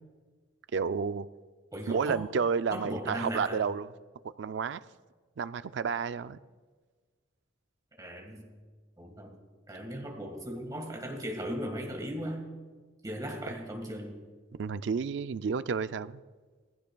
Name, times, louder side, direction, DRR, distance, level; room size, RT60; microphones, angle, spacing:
voice 1, 0.7-1.3 1.9-3.9 4.4-4.8 5.4-6.4 14.6-16.2, right 5 dB, 60° right, 14 dB, 0.4 m, -31 dB
voice 2, 1.7-2.3 2.7-3.6 8.0-8.6 9.0-9.4 9.7-12.4 13.0-14.2, equal, 20° right, 2 dB, 1.7 m, -37 dB
19.0 x 15.5 x 2.3 m, 1.4 s
head